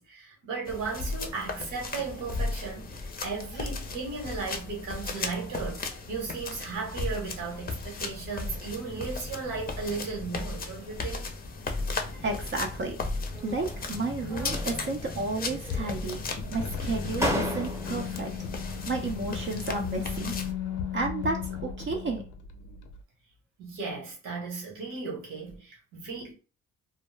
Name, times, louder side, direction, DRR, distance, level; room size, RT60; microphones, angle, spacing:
voice 1, 0.0-11.3 23.6-26.3, right 4 dB, 85° right, 1.2 m, -36 dB
sound 1, 0.7-20.5, left 3 dB, 30° left, 0.5 m, -36 dB
voice 2, 12.2-13.0 13.4-16.2 16.5-18.3 18.9-20.3 20.9-22.2, right 3 dB, 40° right, 0.5 m, -32 dB
sound 2, 13.3-13.9 14.3-15.1 15.3-16.1 16.7-16.8 17.2-18.1, equal, 10° right, 0.8 m, -34 dB
sound 3, 15.7-23.0, left 8 dB, 85° left, 0.5 m, -36 dB
2.2 x 2.0 x 3.2 m
cardioid pair, 90°, 30 cm